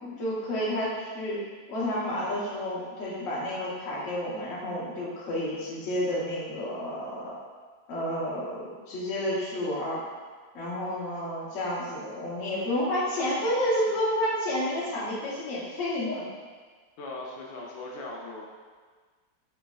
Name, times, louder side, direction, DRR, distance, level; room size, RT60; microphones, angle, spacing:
voice 1, 0.0-1.4 1.7-7.3 7.9-10.0 10.5-16.2, left 1 dB, 50° left, -8 dB, 1.1 m, -30 dB
voice 2, 17.0-18.4, left 2 dB, 80° left, -2 dB, 1.3 m, -39 dB
4.0 x 3.1 x 2.3 m, 1.5 s
omnidirectional pair, 2.1 m